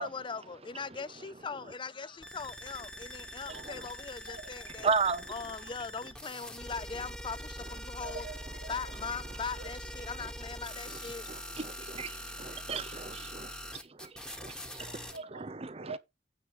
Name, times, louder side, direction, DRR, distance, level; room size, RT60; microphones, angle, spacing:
voice 1, 0.0-4.9 5.3-8.3 8.7-11.4, left 5 dB, 30° left, 0.5 m, -40 dB
sound 1, 2.2-15.2, equal, 5° left, 1.6 m, -43 dB
voice 2, 3.5-3.8 4.3-4.5 8.0-8.9 9.6-9.7 10.1-10.2 14.3-14.4 14.9-16.0, right 4 dB, 80° right, 0.9 m, -46 dB
voice 3, 4.8-5.3 10.2-10.3 11.3-14.9 15.7-16.0, right 5 dB, 35° right, 0.8 m, -34 dB
9.5 x 8.7 x 3.1 m
head